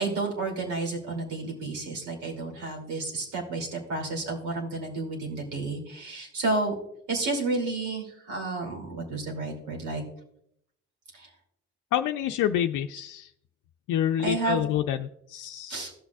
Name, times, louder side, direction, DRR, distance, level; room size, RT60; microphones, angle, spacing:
voice 1, 0.0-6.7 7.1-10.0 11.1-11.3 14.2-14.6 15.7-15.9, right 3 dB, 80° right, 0 dB, 2.7 m, -31 dB
voice 2, 11.9-13.3 13.9-15.8, left 10 dB, 85° left, 5 dB, 0.5 m, -28 dB
16.0 x 6.2 x 2.3 m, 0.73 s
cardioid pair, 90°, 30 cm